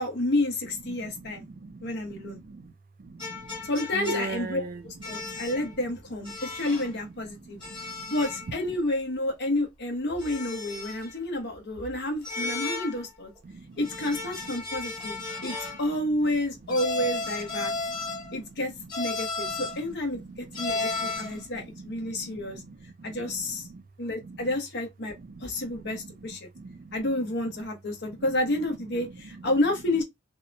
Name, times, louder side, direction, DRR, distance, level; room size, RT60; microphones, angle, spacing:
voice 1, 0.0-1.4 1.8-2.4 3.6-7.6 8.1-13.3 13.8-17.7 18.3-18.7 19.0-20.2 20.6-22.6 23.0-23.7 24.0-25.1 25.4-26.5 26.9-30.0, left 1 dB, 60° left, 0.9 m, -30 dB
voice 2, 0.9-2.7 3.0-3.6 3.9-4.8 5.1-5.4 7.7-8.1 13.4-13.8 15.3-15.4 17.6-18.4 20.1-20.3 20.6-23.8 24.2-24.5 25.3-25.5 25.7-26.0 26.6-26.9, right 3 dB, 45° right, 0.4 m, -41 dB
sound 1, 3.2-4.5 5.0-5.7 6.2-6.9 7.6-8.5 8.8-8.9 10.2-11.2 12.2-13.1 13.8-15.9 16.7-18.4 18.9-19.8 20.5-21.4, left 3 dB, 25° left, 1.3 m, -34 dB
2.7 x 2.1 x 2.5 m
head